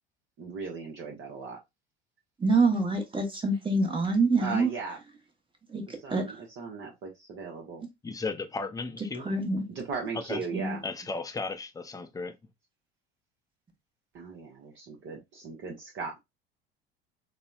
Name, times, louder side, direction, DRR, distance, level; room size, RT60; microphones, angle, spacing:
voice 1, 0.4-1.6 4.4-5.0 6.0-7.8 9.7-10.8 14.1-16.2, right 4 dB, 40° right, 0.8 m, -38 dB
voice 2, 2.4-4.7 5.7-6.4 9.2-9.6 10.5-10.8, right 3 dB, 15° right, 1.0 m, -26 dB
voice 3, 8.0-9.3 10.3-10.4 10.8-12.3, left 3 dB, 10° left, 0.5 m, -35 dB
4.0 x 2.1 x 2.3 m
figure-of-eight pair, 65°, 31 cm